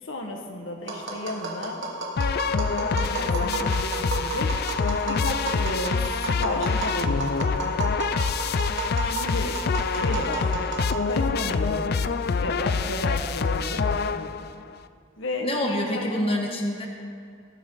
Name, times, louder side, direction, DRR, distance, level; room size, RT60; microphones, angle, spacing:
voice 1, 0.0-1.8 2.4-4.5 5.1-7.8 9.0-9.6 9.9-10.8 11.1-11.9 12.4-14.4 15.2-16.4, left 1 dB, 70° left, 2 dB, 1.7 m, -33 dB
Tap, 0.9-11.3, right 2 dB, 65° right, 2.8 m, -31 dB
sound 1, 2.2-14.6, left 5 dB, 50° left, 0.4 m, -26 dB
voice 2, 15.4-16.9, left 1 dB, 30° left, 0 dB, 1.5 m, -26 dB
20.5 x 12.0 x 4.0 m, 2.4 s
head